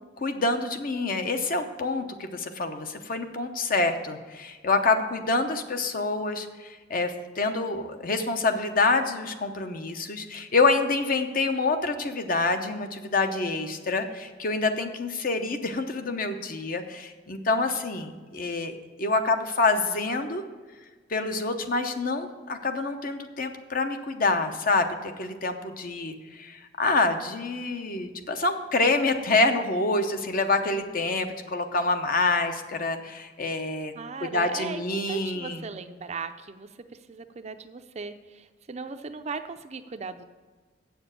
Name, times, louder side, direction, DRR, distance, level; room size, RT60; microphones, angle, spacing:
voice 1, 0.2-20.4 21.1-33.9 34.2-35.7, left 3 dB, 45° left, 7 dB, 0.8 m, -27 dB
voice 2, 33.9-40.2, right 4 dB, 35° right, 9 dB, 0.5 m, -38 dB
7.9 x 7.0 x 7.5 m, 1.4 s
head